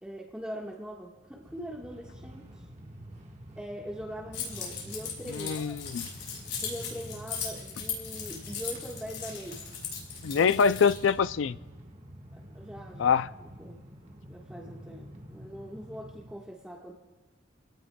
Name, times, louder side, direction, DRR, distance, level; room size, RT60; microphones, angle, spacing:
voice 1, 0.0-2.6 3.5-5.7 6.6-9.7 12.3-13.1 13.4-16.9, equal, 5° right, 1.4 m, -42 dB
Train, 1.1-16.3, equal, 40° right, 1.4 m, -47 dB
Keys jangling, 4.3-11.1, left 7 dB, 65° left, 6.1 m, -38 dB
voice 2, 5.3-6.1 10.2-11.5 13.0-13.3, left 6 dB, 80° left, 0.4 m, -24 dB
29.0 x 17.5 x 2.3 m
head